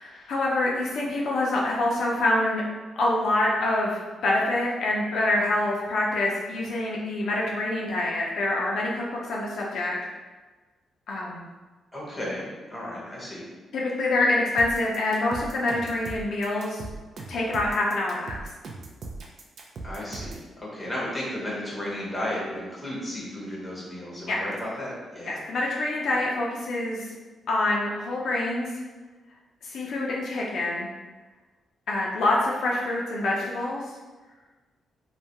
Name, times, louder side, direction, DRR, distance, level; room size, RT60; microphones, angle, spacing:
voice 1, 0.0-2.6 3.0-10.0 11.1-11.5 13.7-16.9 17.3-18.4 24.3-24.4 25.3-27.1 27.5-28.7 29.6-30.9 31.9-33.8, left 2 dB, 70° left, -3 dB, 0.4 m, -26 dB
voice 2, 11.9-13.5 19.8-25.4, left 1 dB, 5° left, -6 dB, 0.7 m, -34 dB
sound 1, 14.6-20.5, right 3 dB, 55° right, 0.3 m, -39 dB
2.2 x 2.1 x 2.7 m, 1.3 s
cardioid pair, 135°, 0 cm